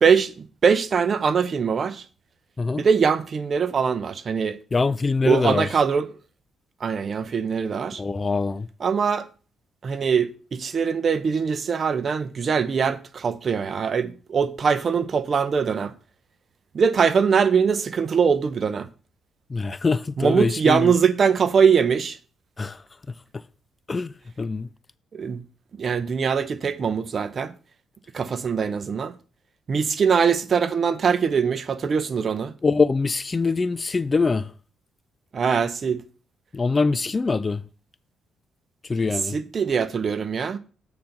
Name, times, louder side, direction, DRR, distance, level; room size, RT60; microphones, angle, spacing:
voice 1, 0.0-2.0 2.8-4.6 5.2-6.1 6.8-8.0 8.8-9.3 9.8-15.9 16.7-18.9 20.2-22.2 25.1-25.4 25.8-27.5 28.1-29.1 29.7-32.5 35.3-36.0 39.3-40.6, right 6 dB, 45° right, 0.7 m, -22 dB
voice 2, 4.7-5.7 8.0-8.7 19.5-20.9 22.6-22.8 23.9-24.1 24.4-24.7 32.6-34.5 36.5-37.6 38.9-39.4, left 4 dB, 30° left, 0.3 m, -23 dB
8.5 x 3.9 x 5.8 m
cardioid pair, 90°, 0 cm